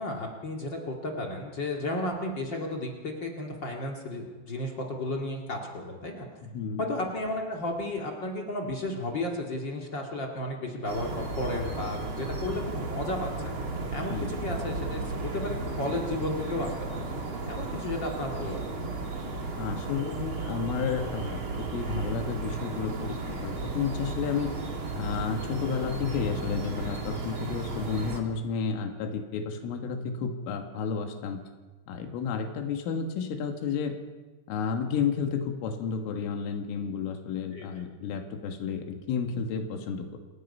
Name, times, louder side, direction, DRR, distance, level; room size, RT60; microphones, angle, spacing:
voice 1, 0.0-6.3 6.8-13.5 13.9-15.0 15.3-17.1 17.5-18.7 37.5-37.7, left 1 dB, 50° left, 0 dB, 1.4 m, -33 dB
voice 2, 6.5-6.8 14.1-14.3 19.6-24.5 24.9-31.4 31.9-34.0 34.5-40.2, left 6 dB, 90° left, 4 dB, 4.3 m, -31 dB
sound 1, 10.9-28.2, right 3 dB, 40° right, 2.0 m, -34 dB
28.5 x 18.0 x 5.5 m, 1.3 s
omnidirectional pair, 5.6 m